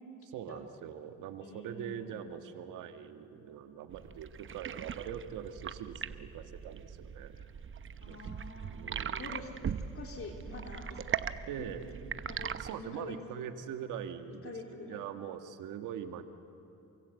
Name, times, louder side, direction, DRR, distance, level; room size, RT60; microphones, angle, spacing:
voice 1, 0.2-7.3 8.1-8.2 8.6-9.4 11.5-11.8 12.5-14.5 14.8-16.2, right 9 dB, 90° right, 8 dB, 1.5 m, -43 dB
voice 2, 1.4-2.2 8.0-8.8 9.2-9.5 9.9-11.0 11.5-11.7 12.2-12.5 12.8-13.5 14.4-15.0, left 3 dB, 45° left, 2 dB, 3.5 m, -46 dB
sound 1, 3.9-12.7, right 8 dB, 40° right, 0.9 m, -40 dB
28.0 x 24.0 x 8.2 m, 2.8 s
cardioid pair, 90°, 30 cm